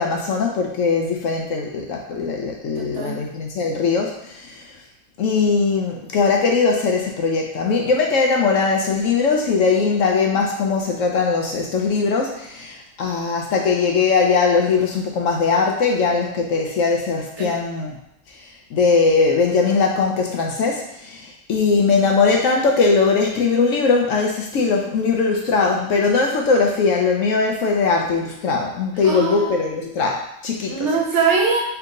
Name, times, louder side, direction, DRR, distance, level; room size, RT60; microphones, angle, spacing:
voice 1, 0.0-4.7 5.2-18.0 18.7-30.7, left 4 dB, 65° left, 1 dB, 0.9 m, -20 dB
voice 2, 2.8-3.2 17.4-17.5 29.0-29.7 30.7-31.6, right 5 dB, 55° right, 0 dB, 1.0 m, -22 dB
3.5 x 2.9 x 3.7 m, 0.83 s
omnidirectional pair, 1.5 m